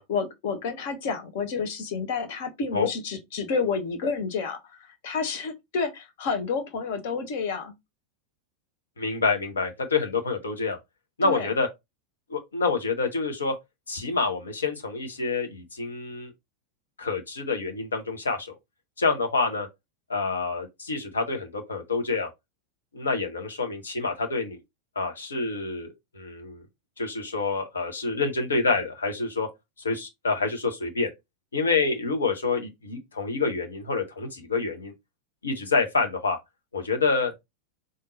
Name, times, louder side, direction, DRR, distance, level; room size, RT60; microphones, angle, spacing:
voice 1, 0.1-7.7 11.2-11.5, left 5 dB, 50° left, 1.0 m, -30 dB
voice 2, 9.0-10.8 11.2-11.7 12.3-13.6 13.9-16.3 17.0-18.5 19.0-19.7 20.1-22.3 22.9-24.6 25.0-26.6 27.0-29.5 29.8-31.1 31.5-34.9 35.4-36.4 36.7-37.3, left 4 dB, 70° left, 0.9 m, -27 dB
3.6 x 2.6 x 4.0 m
figure-of-eight pair, 90°, 0 cm